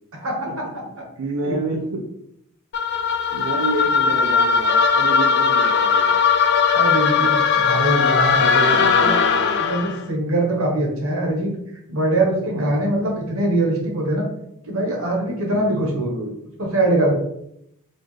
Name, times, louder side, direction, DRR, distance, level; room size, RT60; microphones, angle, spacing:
voice 1, 0.1-0.6 1.4-1.6 6.7-8.4 9.0-9.2 9.6-11.5 11.9-14.3 14.7-16.0 16.6-17.1, right 1 dB, 70° right, 0 dB, 1.1 m, -22 dB
voice 2, 1.2-2.0 3.3-6.2 8.4-9.7 12.5-13.0 15.5-16.4, right 2 dB, 90° right, -1 dB, 0.5 m, -28 dB
sound 1, 2.7-10.0, left 6 dB, 50° left, 0.3 m, -18 dB
4.3 x 2.5 x 3.1 m, 0.77 s
head